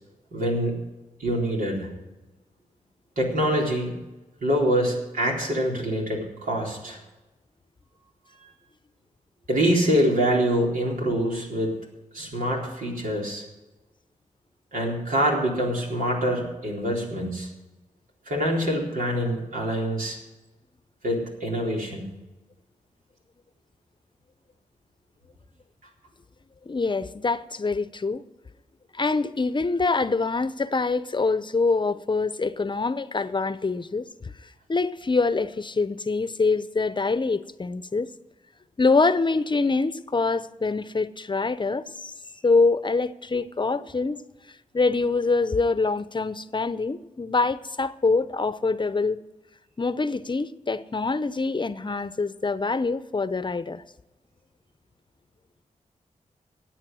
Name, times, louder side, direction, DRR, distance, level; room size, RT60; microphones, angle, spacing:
voice 1, 0.3-0.8 1.2-1.9 3.2-3.9 4.4-7.0 8.4-8.5 9.5-11.8 12.1-13.4 14.7-17.5 18.3-20.2 21.0-22.1, equal, 85° right, 3.9 m, -25 dB
voice 2, 26.7-28.2 28.9-34.1 34.7-38.1 38.8-42.1 42.4-44.2 44.7-49.2 49.8-53.8, left 3 dB, 35° left, 0.7 m, -25 dB
14.5 x 8.9 x 6.2 m
cardioid pair, 60°, 14 cm